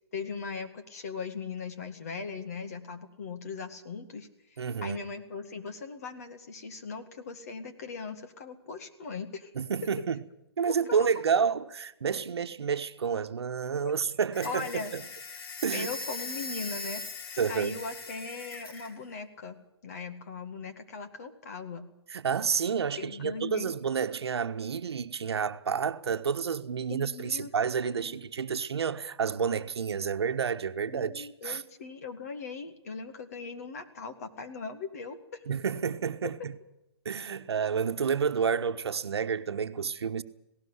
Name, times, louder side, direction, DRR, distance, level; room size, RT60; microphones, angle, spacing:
voice 1, 0.1-9.5 10.9-11.4 13.8-13.9 14.4-14.9 15.7-17.0 17.5-19.6 19.8-21.9 23.0-23.7 26.9-27.5 27.9-28.2 30.9-35.4 36.2-36.3, left 4 dB, 35° left, 2.0 m, -39 dB
voice 2, 4.6-5.0 9.5-10.2 10.6-15.0 15.6-15.9 17.4-17.8 22.1-31.6 35.5-36.5 37.0-40.2, right 6 dB, 70° right, 1.3 m, -30 dB
sound 1, 14.3-18.9, left 3 dB, 60° left, 3.8 m, -40 dB
19.0 x 18.0 x 8.1 m
hypercardioid pair, 180°, 14 cm